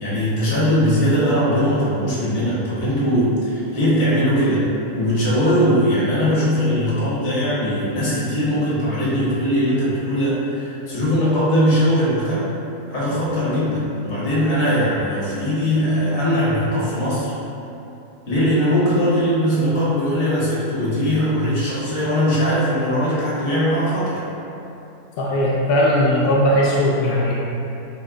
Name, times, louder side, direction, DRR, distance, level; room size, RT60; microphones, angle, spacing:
voice 1, 0.0-4.7 4.9-12.4 12.9-17.3 18.3-24.2, equal, 50° left, -8 dB, 1.3 m, -20 dB
voice 2, 25.2-27.4, equal, 65° left, -4 dB, 0.5 m, -18 dB
5.7 x 2.1 x 3.8 m, 2.9 s
omnidirectional pair, 1.6 m